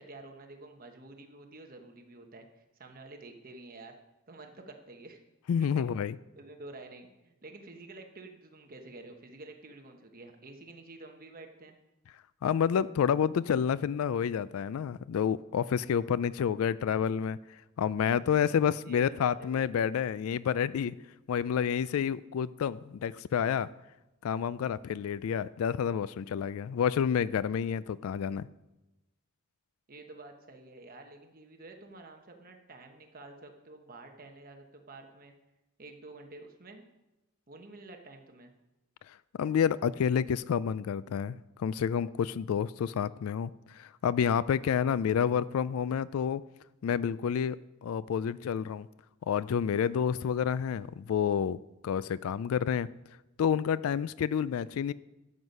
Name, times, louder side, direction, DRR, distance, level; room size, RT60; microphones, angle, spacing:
voice 1, 0.0-3.9 4.3-5.2 5.6-11.7 18.8-19.7 29.9-35.3 35.8-36.9 37.5-38.5, right 2 dB, 45° right, 4 dB, 1.1 m, -49 dB
voice 2, 5.5-6.2 12.4-17.4 17.8-21.0 21.3-23.7 24.2-28.5 39.4-46.4 46.8-47.6 47.8-48.9 49.3-51.6 51.8-52.9 53.4-54.9, left 7 dB, 80° left, 18 dB, 0.3 m, -29 dB
12.5 x 8.0 x 5.4 m, 0.99 s
head